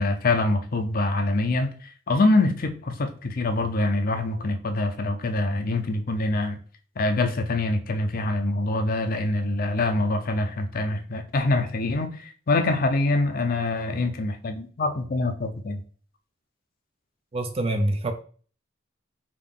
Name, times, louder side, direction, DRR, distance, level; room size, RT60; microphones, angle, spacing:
voice 1, 0.0-6.6 7.0-15.8, left 2 dB, 45° left, 0.5 m, -25 dB
voice 2, 17.3-18.1, right 1 dB, 30° right, 0.4 m, -25 dB
3.6 x 2.5 x 3.6 m
head